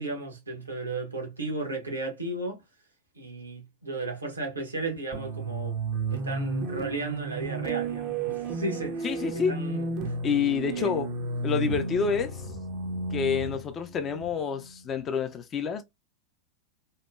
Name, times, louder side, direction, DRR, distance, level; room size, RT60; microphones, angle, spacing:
voice 1, 0.0-2.6 3.2-5.8 6.1-10.1 10.7-10.9, right 2 dB, 80° right, 0.9 m, -35 dB
sound 1, 5.1-15.0, right 3 dB, 40° right, 0.5 m, -33 dB
voice 2, 9.0-9.5 10.2-11.1 11.4-12.4 13.1-15.8, left 6 dB, 25° left, 0.4 m, -28 dB
2.8 x 2.1 x 2.2 m
figure-of-eight pair, 90°, 0 cm